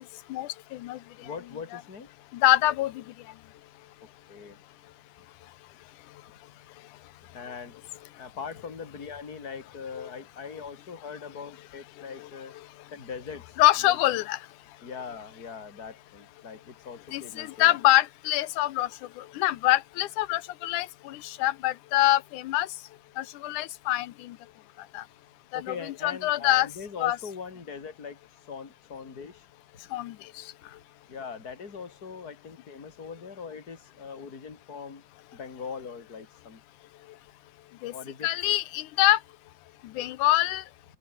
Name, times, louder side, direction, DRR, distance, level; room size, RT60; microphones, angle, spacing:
voice 1, 0.3-1.0 2.3-3.0 10.0-10.1 13.6-14.4 17.1-18.9 19.2-22.7 23.2-24.4 24.9-25.0 25.5-26.7 27.0-27.2 29.9-30.2 37.8-37.9 38.2-39.2 39.9-40.6, left 15 dB, 80° left, 2.3 m, -25 dB
voice 2, 1.2-2.1 4.3-4.6 7.3-7.8 8.2-12.5 12.9-13.5 13.8-14.0 14.8-17.8 25.5-28.2 28.5-29.4 31.1-35.0 35.3-36.6 37.9-38.3, left 5 dB, 30° left, 3.5 m, -41 dB
open air
omnidirectional pair, 3.5 m